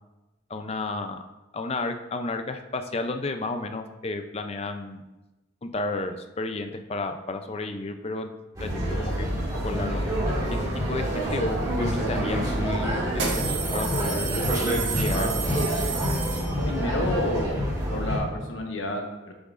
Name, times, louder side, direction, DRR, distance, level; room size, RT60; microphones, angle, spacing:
voice 1, 0.5-1.2 1.5-5.0 5.6-8.3 8.6-10.0 10.9-14.4 15.0-15.3, left 2 dB, 30° left, 7 dB, 0.5 m, -32 dB
sound 1, 8.6-18.2, equal, 20° right, 2.0 m, -27 dB
sound 2, 12.0-12.1 13.1-16.9, right 6 dB, 70° right, 1.6 m, -32 dB
voice 2, 16.6-17.6 17.9-19.3, left 1 dB, 85° left, 2 dB, 1.2 m, -30 dB
7.3 x 7.1 x 2.5 m, 1.1 s
head